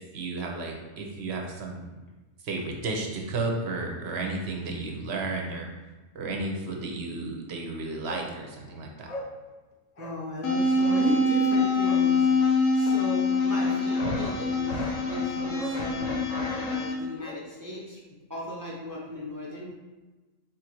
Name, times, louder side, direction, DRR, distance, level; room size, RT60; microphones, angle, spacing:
voice 1, 0.0-1.9 2.4-5.7 6.1-9.1, right 3 dB, 60° right, 1 dB, 0.8 m, -33 dB
Bark, 8.0-8.3 8.6-8.7 9.0-9.3 9.9-10.2 10.8-11.1 11.8-12.1 13.7-13.8 14.2-14.4 14.7-15.0 15.5-15.8 16.4-17.4 17.7-17.8, left 1 dB, 60° left, 0.4 m, -40 dB
voice 2, 10.0-18.0 18.3-19.7, left 1 dB, 25° right, -5 dB, 0.4 m, -36 dB
sound 1, 10.4-16.9, left 2 dB, 80° left, 1.1 m, -25 dB
4.1 x 2.5 x 4.4 m, 1.2 s
omnidirectional pair, 1.4 m